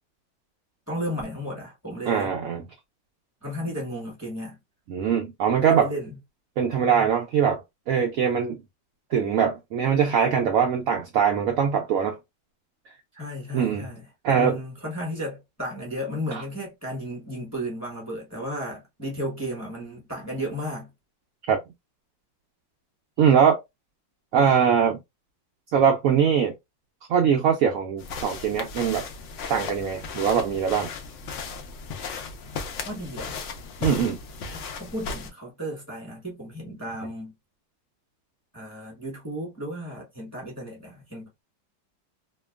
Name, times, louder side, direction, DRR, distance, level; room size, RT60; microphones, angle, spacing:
voice 1, 0.9-2.3 3.4-4.6 5.6-6.2 6.8-7.1 13.1-20.9 32.8-33.4 34.4-37.3 38.5-41.4, equal, 10° left, 0.8 m, -34 dB
voice 2, 2.1-2.6 4.9-5.9 6.6-7.6 7.9-8.6 9.1-12.2 13.5-13.9 14.2-14.6 16.3-16.4 21.5-21.6 23.2-23.6 24.3-25.0 25.7-26.5 27.1-29.0 29.5-30.9 33.8-34.2, right 7 dB, 85° right, 0.7 m, -22 dB
sound 1, 28.0-35.3, left 5 dB, 85° left, 0.6 m, -36 dB
2.8 x 2.2 x 2.3 m
omnidirectional pair, 2.0 m